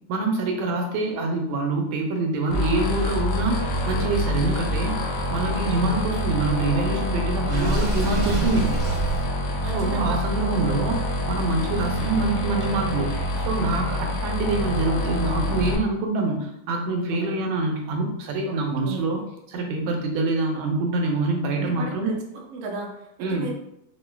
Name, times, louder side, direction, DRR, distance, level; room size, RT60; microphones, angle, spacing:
voice 1, 0.1-5.0 5.3-8.7 9.6-19.2 19.5-22.1 23.2-23.5, right 3 dB, 90° right, 2 dB, 1.4 m, -25 dB
sound 1, 2.5-15.8, equal, 70° left, 0.9 m, -26 dB
voice 2, 5.4-5.7 9.6-10.2 17.1-17.4 18.5-19.2 21.5-23.5, right 3 dB, 65° right, 0 dB, 0.9 m, -36 dB
Water / Sink (filling or washing), 7.5-9.2, right 1 dB, 20° right, 0.9 m, -26 dB
4.5 x 2.1 x 2.3 m, 0.79 s
omnidirectional pair, 2.2 m